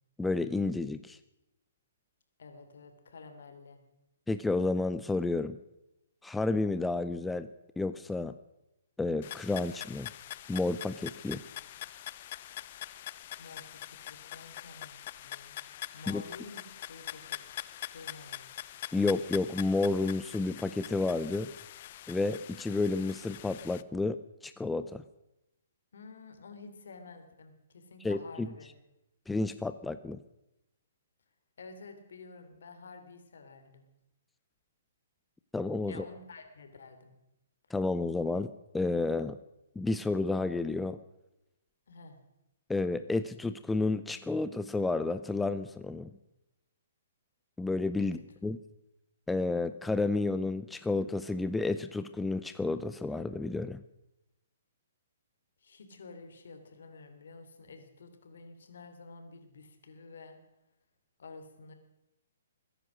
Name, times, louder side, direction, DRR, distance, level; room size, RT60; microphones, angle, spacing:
voice 1, 0.2-1.2 4.3-5.6 6.2-7.5 7.8-8.3 9.0-10.1 10.5-11.4 16.1-16.2 18.9-21.5 22.1-25.0 28.0-28.5 29.3-30.2 35.5-36.0 37.7-39.4 39.8-41.0 42.7-46.1 47.6-48.6 49.3-53.8, left 3 dB, 5° left, 12 dB, 0.5 m, -31 dB
voice 2, 2.4-3.8 13.4-15.6 15.9-16.6 16.9-17.4 17.9-18.5 25.9-28.7 31.6-33.8 35.8-37.1 41.9-42.2 48.0-48.1 55.6-60.4 61.2-61.7, left 4 dB, 75° left, 7 dB, 3.2 m, -50 dB
sound 1, 9.2-23.8, left 13 dB, 45° left, 0.6 m, -44 dB
22.0 x 10.0 x 6.4 m, 0.91 s
hypercardioid pair, 145°, 0 cm